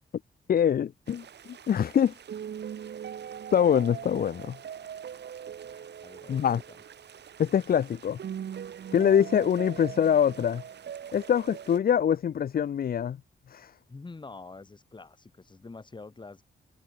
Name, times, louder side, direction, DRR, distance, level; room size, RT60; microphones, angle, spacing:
voice 1, 0.5-1.2 1.7-2.2 3.5-4.6 6.3-6.6 7.4-8.2 8.9-10.6 11.1-13.2 13.5-13.7, left 8 dB, 55° left, 0.8 m, -24 dB
sound 1, 1.1-11.8, right 8 dB, 75° right, 6.0 m, -41 dB
voice 2, 6.0-6.4 13.9-16.4, left 3 dB, 25° left, 6.3 m, -45 dB
wide cardioid pair, 125°, 18 cm